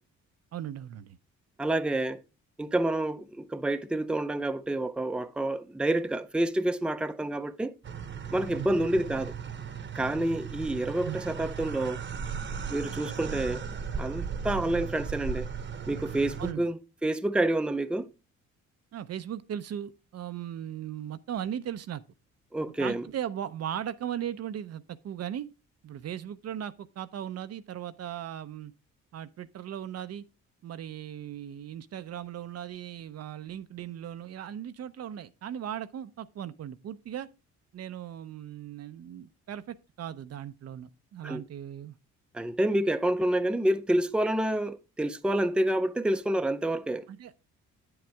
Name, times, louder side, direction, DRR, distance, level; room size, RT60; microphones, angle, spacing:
voice 1, 0.5-1.2 8.6-8.7 11.0-11.2 16.4-16.7 18.9-22.0 22.8-25.5 25.8-28.7 29.1-30.2 30.6-37.3 37.7-42.0 47.1-47.4, right 10 dB, 55° right, 0.6 m, -38 dB
voice 2, 1.6-2.2 2.6-7.7 8.3-9.3 9.9-12.0 12.7-13.6 14.0-15.5 15.9-16.7 17.0-18.1 22.5-23.0 41.2-41.4 42.3-47.1, right 1 dB, 5° right, 0.6 m, -28 dB
sound 1, 7.8-16.5, right 7 dB, 40° right, 1.0 m, -36 dB
8.8 x 7.9 x 3.4 m
cardioid pair, 90°, 30 cm